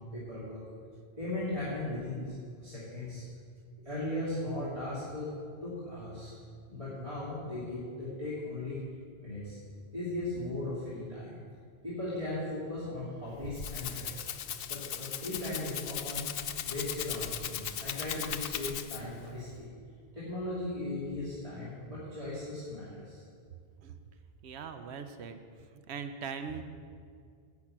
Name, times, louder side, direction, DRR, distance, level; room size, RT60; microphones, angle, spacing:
voice 1, 0.1-0.6 1.2-2.3 2.6-3.2 3.8-5.3 5.6-6.3 6.7-8.8 9.2-9.6 9.9-11.4 11.8-14.2 14.7-16.3 16.6-19.7 20.1-23.2, left 2 dB, 30° right, -11 dB, 2.9 m, -37 dB
Rattle (instrument), 13.3-19.2, left 9 dB, 65° left, 0.7 m, -38 dB
voice 2, 24.4-25.4 25.9-26.6, right 6 dB, 90° right, 8 dB, 1.0 m, -40 dB
10.5 x 6.1 x 8.7 m, 2.2 s
omnidirectional pair, 1.1 m